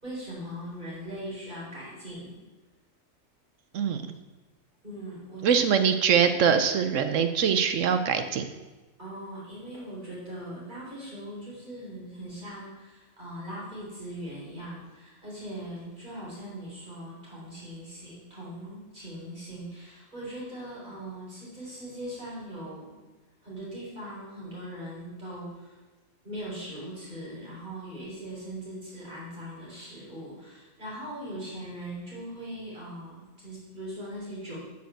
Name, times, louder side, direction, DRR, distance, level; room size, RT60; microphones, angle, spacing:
voice 1, 0.0-2.4 4.8-5.5 9.0-23.0 23.4-25.8 26.2-34.6, right 1 dB, 35° right, -7 dB, 4.2 m, -40 dB
voice 2, 5.4-8.5, right 7 dB, 75° right, 9 dB, 1.0 m, -23 dB
8.6 x 5.7 x 7.7 m, 1.2 s
omnidirectional pair, 1.4 m